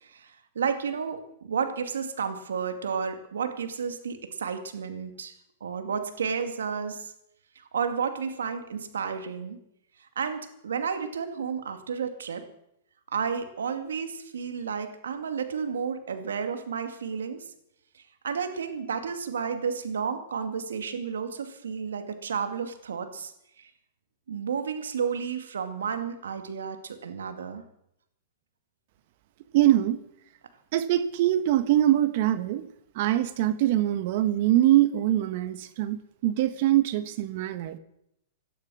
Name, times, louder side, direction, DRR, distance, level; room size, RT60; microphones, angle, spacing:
voice 1, 0.6-5.3 5.6-7.1 7.7-9.6 10.2-12.4 13.1-17.4 18.2-23.3 24.3-27.6, right 6 dB, 85° right, 8 dB, 2.2 m, -31 dB
voice 2, 29.5-30.0 30.7-32.7 32.9-37.8, right 13 dB, 55° right, 12 dB, 1.4 m, -23 dB
18.5 x 12.0 x 6.3 m, 0.78 s
hypercardioid pair, 125°, 0 cm